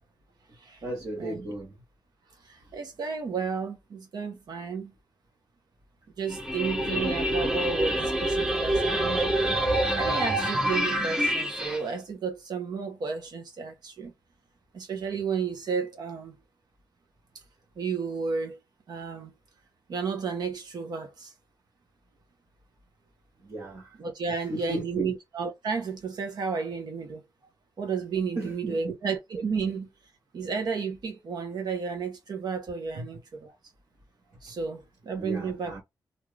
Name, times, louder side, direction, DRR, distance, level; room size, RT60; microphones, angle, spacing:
voice 1, 0.8-1.7 23.4-23.9 24.3-25.1 28.3-28.9 32.9-33.0 35.2-35.8, right 1 dB, 50° right, 1.2 m, -35 dB
voice 2, 2.5-4.9 6.2-14.1 14.7-16.3 17.8-18.6 18.9-19.3 19.9-21.3 24.0-27.2 27.8-29.9 30.3-33.5 34.4-35.8, right 5 dB, 70° right, 0.9 m, -32 dB
sound 1, 6.3-11.8, right 1 dB, 10° right, 0.6 m, -26 dB
2.7 x 2.4 x 3.2 m
wide cardioid pair, 175°, 7 cm